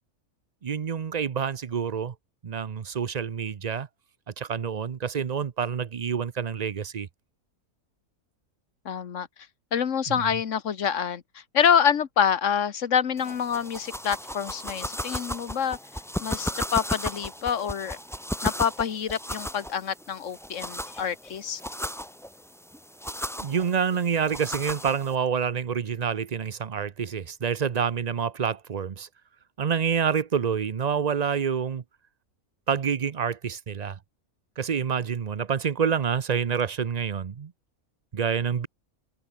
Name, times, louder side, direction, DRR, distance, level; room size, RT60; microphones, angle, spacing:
voice 1, 0.6-2.1 2.4-3.9 4.4-7.1 10.1-10.2 23.4-29.1 29.6-31.8 32.7-34.0 34.6-37.5 38.1-38.7, right 7 dB, 45° right, 0.5 m, -27 dB
voice 2, 8.8-9.3 9.7-15.8 16.2-18.0 18.4-21.6, left 8 dB, 60° left, 1.6 m, -26 dB
sound 1, 13.2-25.2, equal, ahead, 1.5 m, -35 dB
omnidirectional pair, 1.5 m